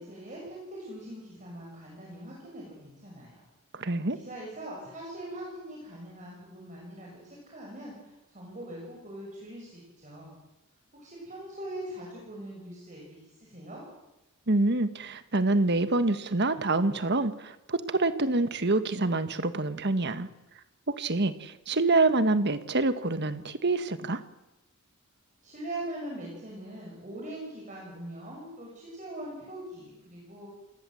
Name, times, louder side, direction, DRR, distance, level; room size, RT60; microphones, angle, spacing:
voice 1, 0.0-3.4 3.8-3.9 4.1-10.3 10.9-13.8 25.4-30.5, right 1 dB, 35° right, -2 dB, 6.6 m, -42 dB
voice 2, 3.7-4.2 14.5-20.3 20.9-24.2, right 2 dB, 50° right, 11 dB, 1.5 m, -26 dB
28.0 x 20.5 x 7.8 m, 1.0 s
head